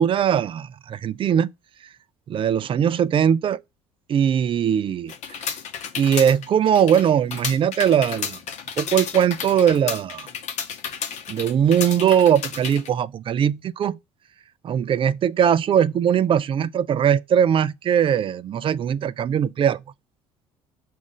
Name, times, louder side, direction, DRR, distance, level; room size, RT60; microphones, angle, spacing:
voice 1, 0.0-1.5 2.3-3.6 4.1-5.4 6.0-8.4 8.8-10.3 11.3-14.0 14.6-19.8, right 8 dB, 40° right, 0.4 m, -20 dB
sound 1, 5.1-12.9, left 7 dB, 55° left, 0.8 m, -32 dB
4.9 x 2.5 x 3.7 m
hypercardioid pair, 65°, 14 cm